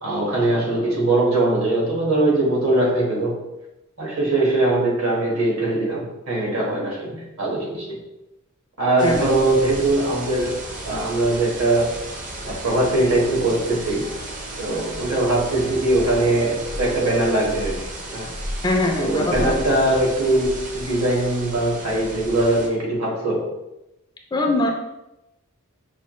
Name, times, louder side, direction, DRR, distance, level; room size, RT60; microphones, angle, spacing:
voice 1, 0.0-3.3 4.0-8.0 8.8-10.6 10.8-11.9 12.4-14.1 14.6-18.3 19.0-23.5, right 2 dB, 65° right, -3 dB, 1.4 m, -21 dB
sound 1, 9.0-22.7, right 1 dB, 35° right, 0.6 m, -34 dB
voice 2, 18.6-19.6 24.3-24.7, left 2 dB, 20° left, 2 dB, 0.4 m, -22 dB
5.6 x 2.4 x 3.0 m, 0.93 s
head